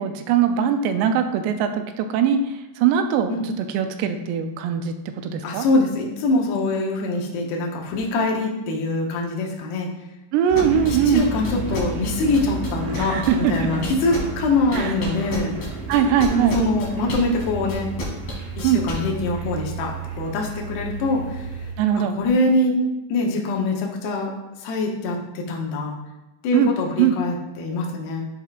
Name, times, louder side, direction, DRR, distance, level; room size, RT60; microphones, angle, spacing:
voice 1, 0.0-2.4 2.8-5.0 5.2-5.7 10.3-11.2 13.0-13.5 14.7-14.9 15.9-16.6 18.6-18.8 21.8-22.2 26.5-26.7 27.0-27.1, right 8 dB, 85° right, 7 dB, 2.6 m, -21 dB
voice 2, 5.4-9.9 10.9-15.6 16.3-17.9 18.6-21.4 21.9-22.8 23.1-24.3 24.6-26.0 26.4-28.2, left 2 dB, 75° left, -1 dB, 2.9 m, -24 dB
sound 1, 10.5-14.5 14.7-18.9, left 2 dB, 50° left, 2.3 m, -32 dB
sound 2, 10.5-21.7, right 3 dB, 70° right, 2.7 m, -32 dB
10.5 x 4.5 x 2.4 m, 0.96 s
omnidirectional pair, 4.8 m